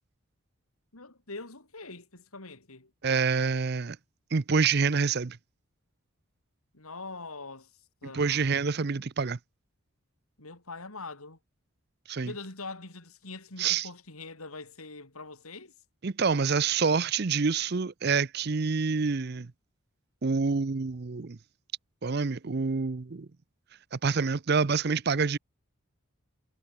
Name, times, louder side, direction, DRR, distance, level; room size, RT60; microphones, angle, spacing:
voice 1, 0.9-2.9 6.7-7.7 8.0-8.6 10.4-11.4 12.2-15.7, left 3 dB, 90° left, 4.3 m, -43 dB
voice 2, 3.0-4.0 4.3-5.4 8.1-9.4 12.1-12.3 13.6-13.9 16.0-19.5 20.2-21.4 22.0-23.3 23.9-25.4, right 5 dB, 50° right, 0.6 m, -27 dB
head